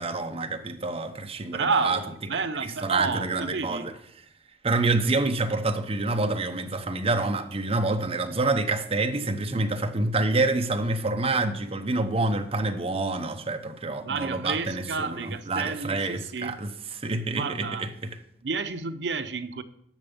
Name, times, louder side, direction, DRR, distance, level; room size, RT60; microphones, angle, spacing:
voice 1, 0.0-2.0 2.6-3.9 4.6-16.7 17.0-18.2, right 2 dB, 35° right, 0.9 m, -27 dB
voice 2, 1.5-3.9 14.0-16.6 17.3-17.9 18.4-19.6, right 4 dB, 75° right, 0.7 m, -30 dB
10.5 x 6.8 x 5.4 m
head